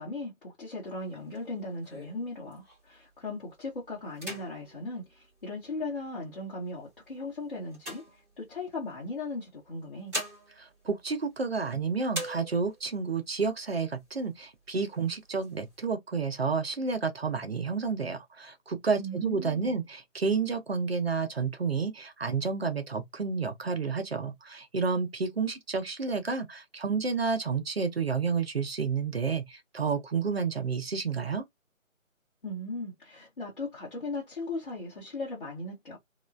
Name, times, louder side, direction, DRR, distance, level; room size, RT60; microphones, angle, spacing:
voice 1, 0.0-8.0 8.4-10.1 19.0-19.8 32.4-36.0, left 2 dB, 40° left, 1.4 m, -37 dB
sound 1, 0.9-3.0 3.5-3.7 4.1-6.0 6.7-8.8 9.7-11.7 12.1-12.9 13.4-13.5 13.8-14.4 14.9-15.8, equal, 10° right, 1.9 m, -42 dB
voice 2, 10.6-31.4, right 5 dB, 50° right, 0.7 m, -30 dB
3.0 x 2.9 x 2.5 m
figure-of-eight pair, 165°, 41 cm